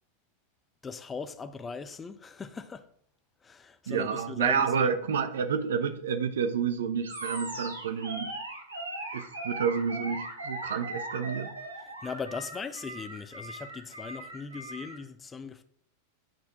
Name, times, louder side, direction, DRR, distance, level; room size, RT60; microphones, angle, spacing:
voice 1, 0.8-2.8 3.4-4.9 11.8-15.6, left 5 dB, 15° left, 0.6 m, -39 dB
voice 2, 3.9-8.3 9.1-11.5, right 6 dB, 60° right, 0.7 m, -29 dB
Animal, 7.0-15.0, right 2 dB, 80° right, 1.4 m, -39 dB
9.2 x 4.3 x 4.6 m
figure-of-eight pair, 90°, 0 cm